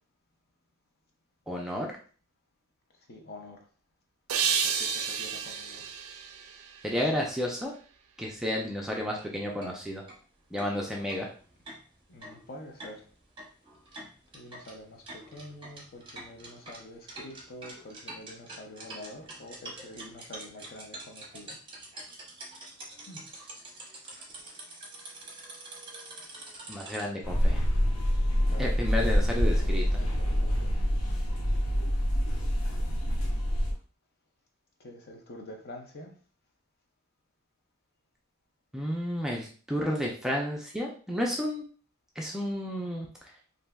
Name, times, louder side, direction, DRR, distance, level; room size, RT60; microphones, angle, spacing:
voice 1, 1.5-1.9 6.8-7.7 8.2-10.0 10.5-11.3 26.7-27.6 28.6-29.8 38.7-41.6 42.2-43.1, left 1 dB, ahead, -1 dB, 0.3 m, -31 dB
voice 2, 3.0-3.7 4.4-5.9 7.0-7.3 12.1-13.1 14.3-21.6 23.1-23.2 28.4-28.7 29.6-30.8 34.8-36.1, left 1 dB, 50° left, 2 dB, 0.6 m, -47 dB
sound 1, 4.3-7.4, right 6 dB, 85° right, 0.4 m, -31 dB
sound 2, 9.1-9.3 9.6-9.7 10.1-10.2 10.6-27.1, right 2 dB, 25° right, 0.8 m, -46 dB
sound 3, 27.2-33.7, equal, 85° left, 0.6 m, -26 dB
3.2 x 2.6 x 2.2 m, 0.41 s
head